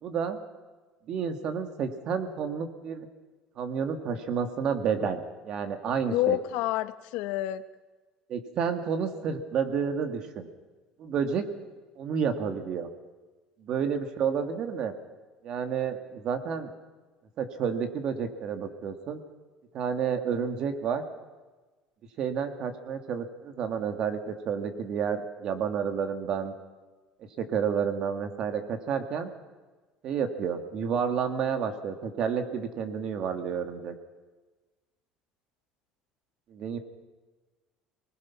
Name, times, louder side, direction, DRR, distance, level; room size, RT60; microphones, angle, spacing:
voice 1, 0.0-0.4 1.1-3.1 3.6-6.4 8.3-10.5 11.0-11.4 12.0-12.9 13.6-14.9 15.4-16.7 17.4-19.2 19.7-21.0 22.2-26.5 27.4-29.3 30.0-33.9 36.5-36.8, right 7 dB, 40° right, 7 dB, 2.0 m, -30 dB
voice 2, 6.1-7.6, left 15 dB, 75° left, 12 dB, 1.0 m, -28 dB
25.0 x 20.0 x 5.9 m, 1.2 s
cardioid pair, 170°, 2 cm